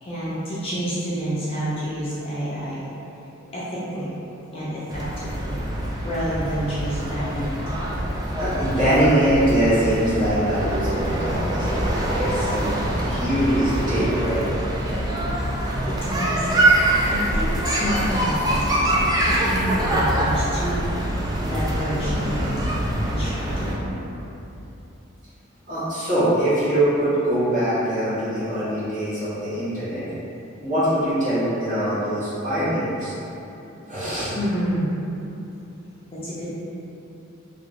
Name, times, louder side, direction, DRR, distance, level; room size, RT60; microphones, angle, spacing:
voice 1, 0.0-2.9 3.5-4.1 4.5-7.7 15.8-20.9 21.4-22.5 23.0-23.9 34.3-34.9 36.1-36.5, equal, 30° left, -10 dB, 0.7 m, -29 dB
sound 1, 4.9-23.8, right 1 dB, 20° right, 0.3 m, -24 dB
voice 2, 8.4-12.7 13.0-14.4 25.7-30.1 30.6-33.1 33.9-34.3, right 1 dB, 40° right, -13 dB, 1.3 m, -23 dB
3.1 x 3.1 x 2.6 m, 2.9 s
head